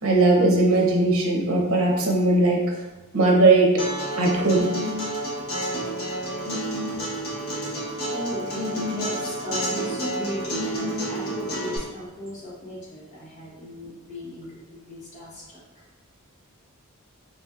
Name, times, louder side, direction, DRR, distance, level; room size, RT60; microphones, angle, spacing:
voice 1, 0.0-2.6 3.1-3.8 4.2-4.7, right 2 dB, 65° right, -1 dB, 0.8 m, -19 dB
Acoustic guitar, 3.8-11.8, equal, 65° left, 1.2 m, -30 dB
voice 2, 8.1-15.6, equal, 35° left, -7 dB, 1.1 m, -36 dB
3.9 x 2.9 x 2.4 m, 1.2 s
head